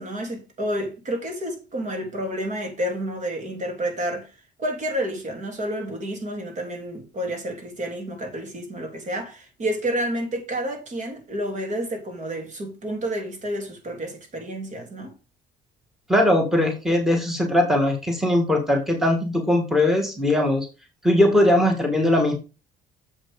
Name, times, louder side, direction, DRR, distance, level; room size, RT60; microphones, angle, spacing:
voice 1, 0.0-4.3 4.6-15.1, right 1 dB, 45° right, 2.9 m, -30 dB
voice 2, 16.1-20.7 21.0-22.3, left 1 dB, ahead, 2.2 m, -20 dB
7.4 x 6.2 x 4.9 m
cardioid pair, 110°, 17 cm